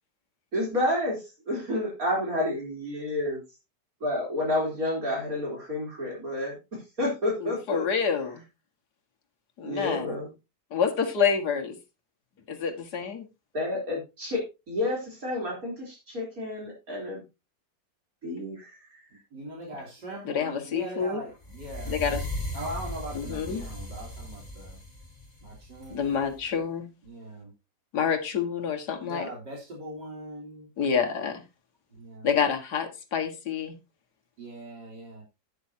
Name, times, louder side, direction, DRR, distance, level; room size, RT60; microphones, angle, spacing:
voice 1, 0.5-1.2 1.5-3.4 4.0-6.6 7.0-7.8 9.6-10.3 13.5-17.2 18.2-18.7, left 1 dB, 50° right, 4.2 m, -30 dB
voice 2, 7.4-8.4 9.6-10.2 10.7-11.8 12.5-13.3 20.2-21.2 21.9-22.3 23.1-23.6 25.9-26.9 27.9-29.3 30.8-31.4 32.2-33.7, left 6 dB, 65° left, 2.1 m, -28 dB
voice 3, 19.3-22.0 22.5-24.8 25.4-26.3 27.0-27.5 29.1-30.7 31.9-32.3 34.4-35.2, right 1 dB, 70° right, 4.1 m, -40 dB
sound 1, 21.4-26.5, left 1 dB, 20° left, 3.7 m, -37 dB
11.0 x 9.8 x 2.8 m
omnidirectional pair, 1.9 m